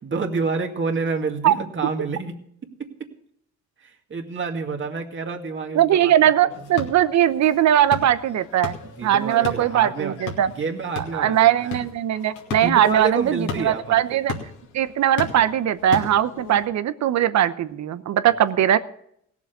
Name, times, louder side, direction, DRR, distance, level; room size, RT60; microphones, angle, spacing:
voice 1, 0.0-2.4 2.8-3.1 3.8-6.1 8.8-10.2 10.6-11.8 12.6-14.2, right 4 dB, 40° right, 2 dB, 2.2 m, -28 dB
voice 2, 5.7-8.8 9.0-10.5 11.1-14.3 14.7-18.8, right 11 dB, 65° right, 14 dB, 0.9 m, -20 dB
sound 1, 6.5-16.7, left 5 dB, 90° left, 2.4 m, -36 dB
17.0 x 7.2 x 6.7 m, 0.71 s
cardioid pair, 90°, 30 cm